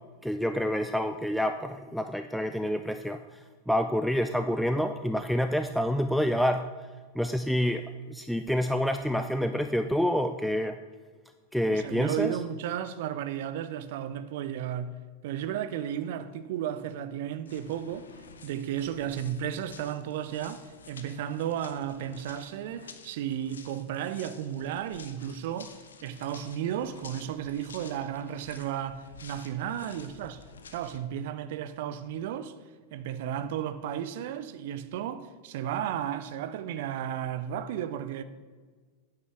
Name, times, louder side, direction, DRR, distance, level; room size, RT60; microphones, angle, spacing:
voice 1, 0.2-3.4 3.7-6.7 7.2-10.8 11.5-12.4, equal, ahead, 0.4 m, -28 dB
voice 2, 11.7-15.0 15.2-18.1 18.4-25.7 26.0-30.4 30.7-32.5 32.9-38.2, right 10 dB, 50° right, 0.5 m, -34 dB
sound 1, 17.5-31.0, left 5 dB, 70° left, 0.8 m, -51 dB
9.5 x 6.5 x 6.2 m
figure-of-eight pair, 90°, 0 cm